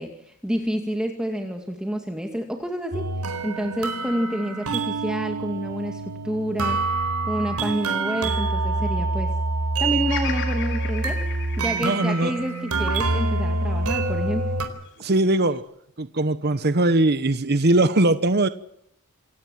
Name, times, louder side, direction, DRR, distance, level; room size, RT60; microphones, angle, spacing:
voice 1, 0.0-3.1 3.4-6.8 7.3-9.3 9.8-11.2 11.6-14.5, equal, 5° right, 3 dB, 2.2 m, -28 dB
sound 1, 2.9-14.7, right 3 dB, 90° right, 4.3 m, -26 dB
Bird vocalization bird call bird song, 10.1-14.3 14.9-15.6, left 7 dB, 55° left, 5.1 m, -37 dB
voice 2, 11.8-12.3 15.0-15.6 16.0-18.5, right 2 dB, 45° right, 12 dB, 1.0 m, -20 dB
27.5 x 17.5 x 7.5 m, 0.74 s
head